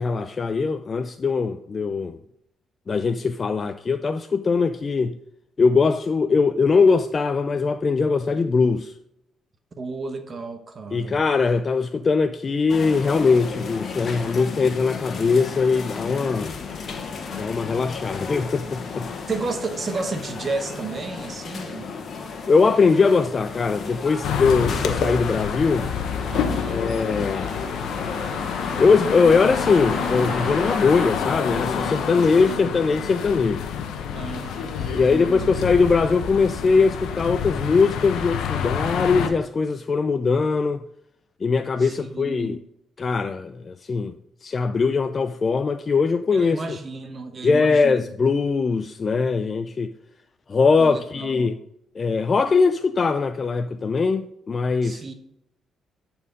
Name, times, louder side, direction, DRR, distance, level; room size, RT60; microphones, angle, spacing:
voice 1, 0.0-2.2 2.9-5.2 5.6-8.9 10.9-16.5 17.3-19.1 22.5-25.9 26.7-27.5 28.8-33.6 34.9-40.8 41.4-42.6 43.0-44.1 44.4-46.8 47.4-49.9 50.5-51.6 52.0-55.0, left 4 dB, 40° left, 0.4 m, -21 dB
voice 2, 9.8-11.2 19.3-21.9 26.3-26.8 32.5-32.6 34.1-35.5 41.8-42.6 46.3-48.0 50.8-51.5 54.8-55.1, right 3 dB, 40° right, 1.1 m, -32 dB
sound 1, 12.7-32.6, left 5 dB, 55° left, 1.2 m, -34 dB
sound 2, 24.2-39.3, left 7 dB, 80° left, 0.9 m, -28 dB
sound 3, 24.2-31.1, right 1 dB, 10° right, 1.4 m, -38 dB
11.0 x 4.4 x 5.2 m
cardioid pair, 90°, 0 cm